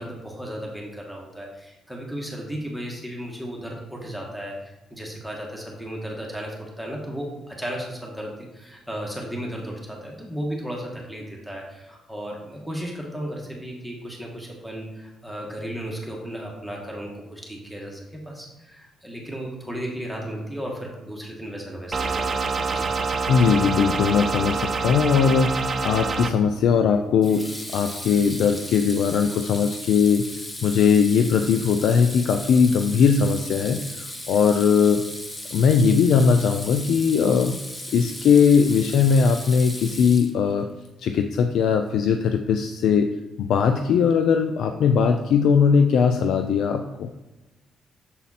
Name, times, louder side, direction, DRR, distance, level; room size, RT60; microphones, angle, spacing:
voice 1, 0.0-22.4 22.7-22.9, equal, ahead, -2 dB, 1.6 m, -35 dB
sound 1, 21.9-26.3, right 4 dB, 35° right, 0.6 m, -26 dB
voice 2, 23.3-27.5 27.7-30.3 30.6-33.8 34.3-35.0 35.5-37.6 37.9-40.7 41.0-43.1 43.4-47.1, left 6 dB, 75° left, 6 dB, 0.4 m, -19 dB
Water tap faucet / Sink (filling or washing), 25.8-25.9 27.2-40.6, left 1 dB, 20° left, 1.1 m, -37 dB
7.2 x 4.1 x 4.2 m, 1.1 s
cardioid pair, 90°, 0 cm